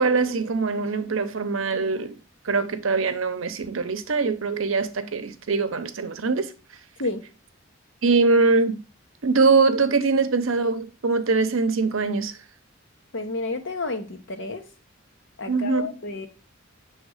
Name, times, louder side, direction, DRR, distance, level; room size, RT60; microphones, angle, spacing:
voice 1, 0.0-2.2 2.4-6.5 8.0-8.8 9.2-12.3 15.5-15.9, right 4 dB, 70° right, 0.7 m, -22 dB
voice 2, 13.1-14.7 15.4-16.3, left 3 dB, 60° left, 1.0 m, -30 dB
6.5 x 3.3 x 4.7 m
head